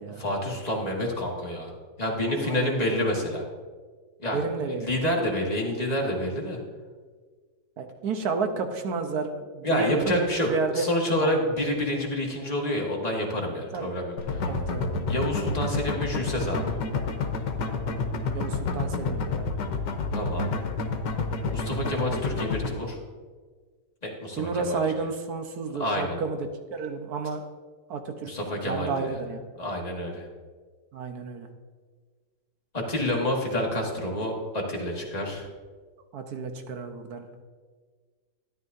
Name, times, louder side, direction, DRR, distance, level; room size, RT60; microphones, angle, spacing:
voice 1, 0.2-1.7 2.0-3.5 4.2-4.4 4.8-6.6 9.6-14.5 15.1-16.8 20.1-20.5 21.5-23.0 24.0-24.8 25.8-26.2 28.2-29.2 29.6-30.3 32.7-35.5, left 1 dB, 25° left, -2 dB, 1.7 m, -28 dB
voice 2, 2.4-3.0 4.2-4.9 7.8-10.9 11.2-11.5 13.7-13.9 14.4-14.9 18.3-19.5 24.3-27.4 27.9-28.3 28.6-29.4 30.9-31.5 36.1-37.3, right 4 dB, 65° right, 6 dB, 1.3 m, -31 dB
sound 1, 14.2-22.7, left 3 dB, 85° left, 1.6 m, -29 dB
13.5 x 10.0 x 2.7 m, 1.5 s
omnidirectional pair, 1.8 m